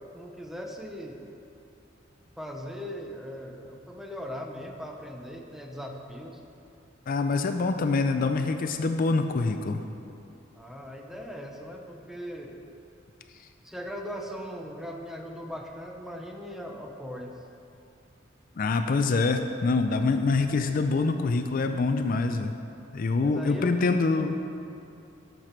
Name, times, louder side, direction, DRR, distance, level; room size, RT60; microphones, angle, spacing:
voice 1, 0.1-1.2 2.4-6.4 10.6-12.5 13.6-17.4 23.2-23.8, equal, ahead, 2 dB, 0.7 m, -39 dB
voice 2, 7.1-9.8 18.6-22.5 22.9-24.4, left 3 dB, 45° left, 7 dB, 0.4 m, -25 dB
12.5 x 6.7 x 4.5 m, 2.7 s
head